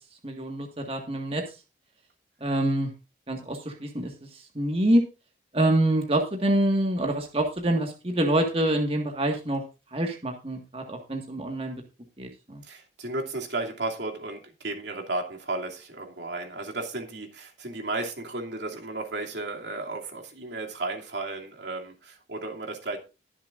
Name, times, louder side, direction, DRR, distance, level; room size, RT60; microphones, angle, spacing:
voice 1, 0.2-1.4 2.4-2.9 3.3-4.1 4.6-5.0 5.5-9.6 9.9-11.8 12.2-12.6, right 1 dB, 35° right, 2 dB, 1.8 m, -26 dB
voice 2, 12.6-23.0, right 2 dB, 75° right, 1 dB, 2.8 m, -34 dB
22.0 x 7.4 x 2.6 m, 0.29 s
head